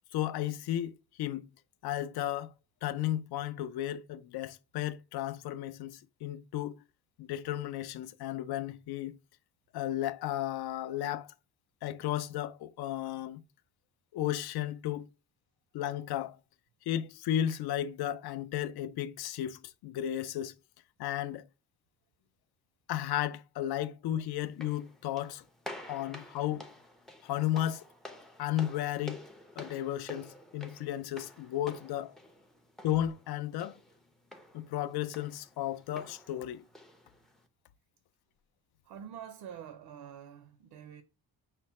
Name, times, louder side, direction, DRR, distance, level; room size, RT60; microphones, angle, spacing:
voice 1, 0.1-1.5 1.8-2.5 2.8-6.7 7.2-9.2 9.7-11.3 11.8-13.4 14.1-15.1 15.7-16.4 16.9-20.5 21.0-21.4 22.9-25.4 25.9-26.7 27.2-27.8 28.4-29.2 29.6-32.1 32.8-33.8 34.5-36.6, left 12 dB, 75° left, 0.5 m, -34 dB
sound 1, 24.4-37.5, left 1 dB, ahead, 0.4 m, -50 dB
voice 2, 38.8-41.0, right 9 dB, 70° right, 0.6 m, -46 dB
5.7 x 2.1 x 4.1 m
cardioid pair, 175°, 38 cm